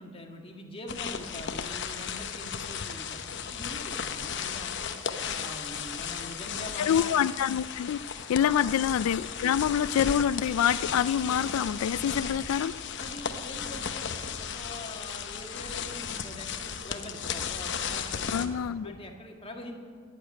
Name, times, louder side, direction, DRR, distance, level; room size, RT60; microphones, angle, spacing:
voice 1, 0.0-3.2 3.5-4.9 5.3-7.2 8.4-8.7 12.9-19.8, left 1 dB, 25° left, 2 dB, 1.8 m, -44 dB
sound 1, 0.9-18.5, left 7 dB, 55° left, 0.9 m, -35 dB
voice 2, 6.8-8.0 8.3-12.7 18.3-18.9, left 9 dB, 85° left, 16 dB, 0.3 m, -26 dB
17.5 x 7.3 x 9.6 m, 2.1 s
head